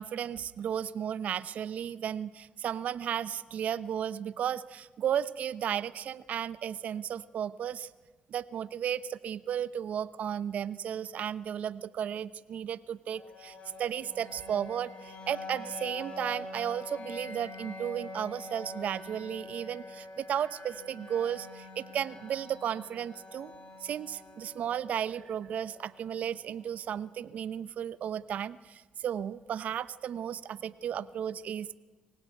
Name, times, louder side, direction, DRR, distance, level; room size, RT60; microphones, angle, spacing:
voice 1, 0.0-7.9 8.3-23.5 23.8-31.8, right 9 dB, 70° right, 16 dB, 0.9 m, -34 dB
sound 1, 13.1-27.0, left 2 dB, 55° left, 7.2 m, -45 dB
24.5 x 18.5 x 9.3 m, 1.2 s
supercardioid pair, 55°, 3 cm